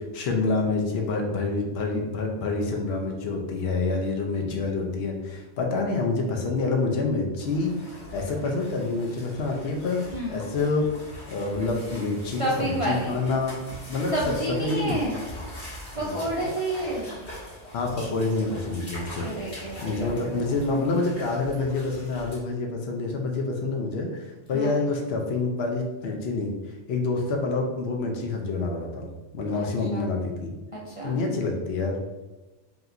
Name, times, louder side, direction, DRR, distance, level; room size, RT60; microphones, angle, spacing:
voice 1, 0.1-7.8 8.1-10.9 11.3-13.6 13.9-15.0 15.9-16.2 17.7-19.3 19.8-29.1 29.3-30.5 31.0-32.1, left 3 dB, 65° left, 2 dB, 0.9 m, -27 dB
sound 1, 7.4-22.4, left 1 dB, 45° left, 1.6 m, -42 dB
voice 2, 12.3-13.2 14.1-15.2 15.9-17.1 19.2-20.6 24.5-24.8 29.5-30.1 30.7-31.2, right 1 dB, 40° right, -5 dB, 0.5 m, -30 dB
5.0 x 2.9 x 2.5 m, 1.1 s
omnidirectional pair, 1.2 m